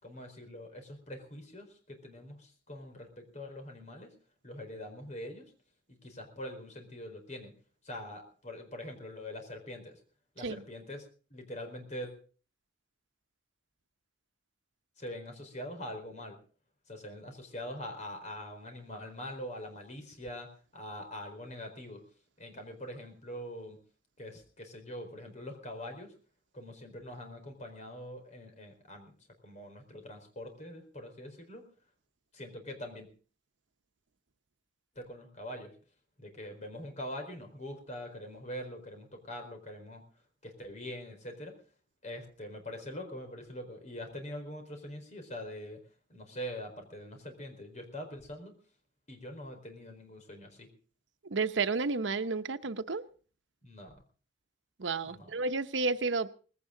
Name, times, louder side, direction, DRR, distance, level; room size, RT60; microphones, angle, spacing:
voice 1, 0.0-4.1 4.4-5.5 5.9-7.5 7.8-10.0 10.3-12.1 15.0-16.4 16.9-22.0 22.4-23.8 24.2-26.1 26.5-29.1 29.4-31.7 32.3-33.1 34.9-35.7 36.2-40.0 40.4-41.6 42.0-45.8 46.1-48.5 49.1-50.7 53.6-54.0 55.0-55.3, left 1 dB, 40° left, 4.4 m, -43 dB
voice 2, 51.3-53.0 54.8-56.3, right 4 dB, 85° right, 0.9 m, -31 dB
19.5 x 16.5 x 3.8 m
head